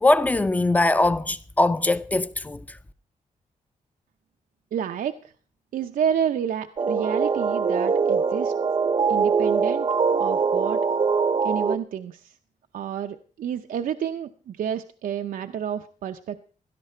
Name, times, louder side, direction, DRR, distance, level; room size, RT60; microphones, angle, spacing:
voice 1, 0.0-2.8, left 2 dB, 10° left, 0.6 m, -21 dB
voice 2, 4.7-5.1 5.7-8.5 9.1-9.9 10.2-10.8 11.4-12.3 12.7-16.4, right 9 dB, 85° right, 0.7 m, -29 dB
sound 1, 6.8-11.8, right 5 dB, 35° right, 0.7 m, -22 dB
16.5 x 12.5 x 4.4 m
wide cardioid pair, 160°, 14 cm